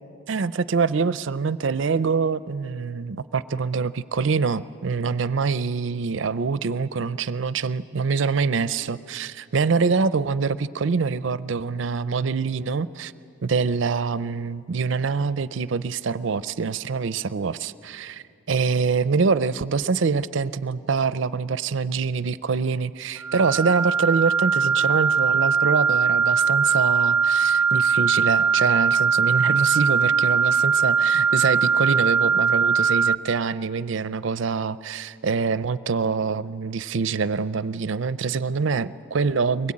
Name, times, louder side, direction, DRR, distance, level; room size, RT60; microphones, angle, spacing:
voice 1, 0.3-13.1 13.4-39.7, right 5 dB, 65° right, 16 dB, 0.5 m, -25 dB
sound 1, 23.2-33.1, right 6 dB, 65° left, 1.2 m, -20 dB
23.5 x 20.5 x 8.6 m, 2.5 s
head